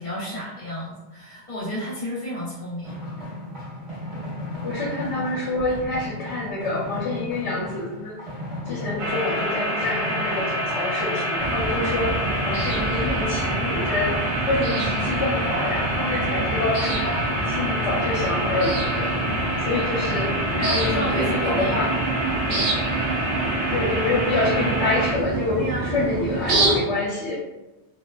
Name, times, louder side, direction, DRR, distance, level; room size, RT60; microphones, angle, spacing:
voice 1, 0.0-3.2 11.8-11.9 14.7-14.9 20.0-21.8 22.4-22.8 25.5-25.9, left 1 dB, 50° left, -9 dB, 0.9 m, -32 dB
sound 1, 2.8-18.6, left 1 dB, 40° right, 1.1 m, -37 dB
voice 2, 4.1-8.2 8.6-17.2 17.5-19.1 19.6-20.3 20.7-22.0 23.7-27.4, left 2 dB, 90° left, -5 dB, 0.9 m, -27 dB
sound 2, 9.0-25.1, equal, 85° right, 0.9 m, -27 dB
sound 3, 11.4-26.8, right 2 dB, 60° right, 0.6 m, -27 dB
2.4 x 2.1 x 2.4 m, 1.0 s
omnidirectional pair, 1.1 m